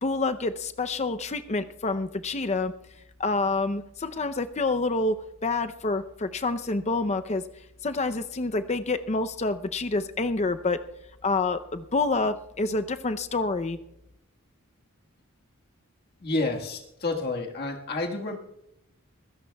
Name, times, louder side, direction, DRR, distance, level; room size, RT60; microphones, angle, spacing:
voice 1, 0.0-2.7 3.2-5.2 5.4-7.4 7.8-10.8 11.2-13.8, left 3 dB, 30° left, 10 dB, 0.6 m, -27 dB
voice 2, 16.2-18.4, left 2 dB, 45° left, 1 dB, 1.7 m, -29 dB
25.5 x 16.0 x 2.3 m, 0.83 s
head